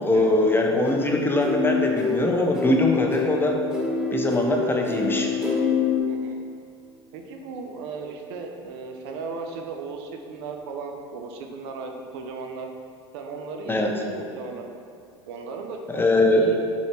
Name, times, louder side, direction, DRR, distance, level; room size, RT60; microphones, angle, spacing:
voice 1, 0.0-3.5 4.1-5.3 13.7-13.9 15.9-16.5, left 2 dB, 15° left, 1 dB, 0.8 m, -22 dB
sound 1, 0.9-6.0, left 4 dB, 5° right, 1.2 m, -26 dB
voice 2, 6.1-6.4 7.1-12.7 13.1-14.7 15.3-16.6, right 4 dB, 65° right, 3 dB, 0.7 m, -36 dB
5.5 x 4.5 x 4.4 m, 2.4 s
hypercardioid pair, 75°, 14 cm